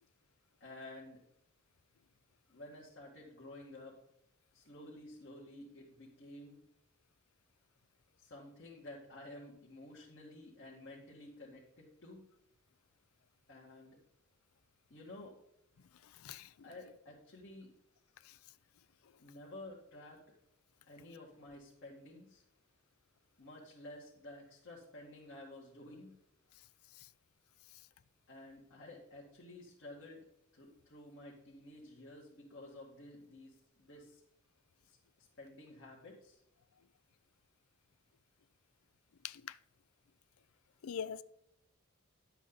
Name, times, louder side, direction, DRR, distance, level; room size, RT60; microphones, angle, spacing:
voice 1, 0.6-1.2 2.5-4.0 4.5-6.6 8.2-12.2 13.5-14.0 14.9-15.4 16.6-17.7 19.2-20.3 20.9-22.4 23.4-26.1 28.3-30.2 30.5-34.2 34.8-36.4, left 1 dB, 60° left, 2.0 m, -52 dB
voice 2, 40.8-41.2, left 7 dB, 90° left, 0.5 m, -41 dB
11.0 x 8.0 x 3.9 m
head